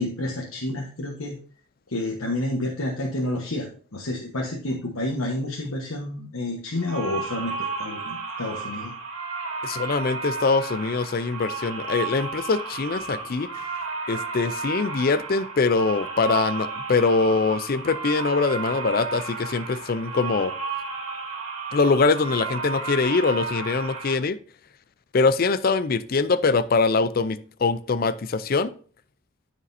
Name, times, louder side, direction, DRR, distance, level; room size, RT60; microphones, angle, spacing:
voice 1, 0.0-1.4 1.9-8.9, left 1 dB, 90° left, -1 dB, 1.3 m, -29 dB
sound 1, 6.8-24.1, right 4 dB, 80° right, 2.3 m, -33 dB
voice 2, 9.6-13.5 14.1-20.5 21.7-24.4 25.1-28.7, left 4 dB, 45° left, 15 dB, 0.4 m, -23 dB
13.0 x 5.1 x 2.7 m, 0.43 s
head